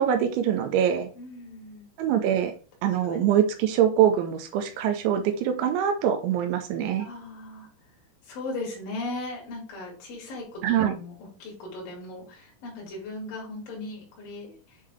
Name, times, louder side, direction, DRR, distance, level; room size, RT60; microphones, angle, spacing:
voice 1, 0.0-1.1 2.0-2.5 2.8-7.1 10.6-11.0, right 9 dB, 85° right, 6 dB, 3.2 m, -24 dB
voice 2, 1.2-1.9 7.0-7.7 8.3-10.6 10.9-11.1 11.4-14.8, left 2 dB, 55° left, -2 dB, 3.6 m, -37 dB
7.8 x 3.7 x 3.4 m, 0.38 s
omnidirectional pair, 5.4 m